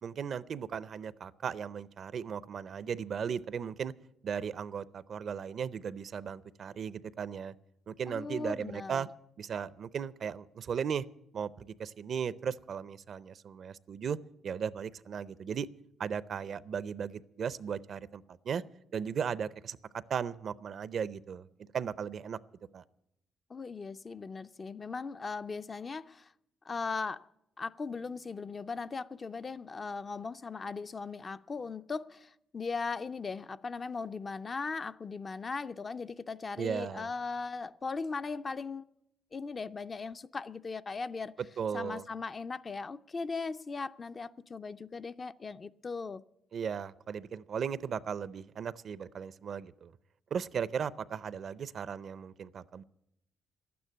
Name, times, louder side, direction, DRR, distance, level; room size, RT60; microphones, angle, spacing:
voice 1, 0.0-3.9 4.2-7.5 7.9-9.1 9.4-11.0 11.3-14.2 14.4-15.7 16.0-18.6 18.9-21.5 21.7-22.4 22.7-22.8 36.6-37.1 41.6-42.0 46.5-49.9 50.3-52.8, right 7 dB, 55° right, 0.5 m, -36 dB
voice 2, 8.1-9.1 23.5-26.3 26.6-27.3 27.6-38.9 39.3-41.3 41.7-46.2, left 4 dB, 35° left, 0.4 m, -38 dB
12.0 x 9.4 x 9.8 m
cardioid pair, 90°, 0 cm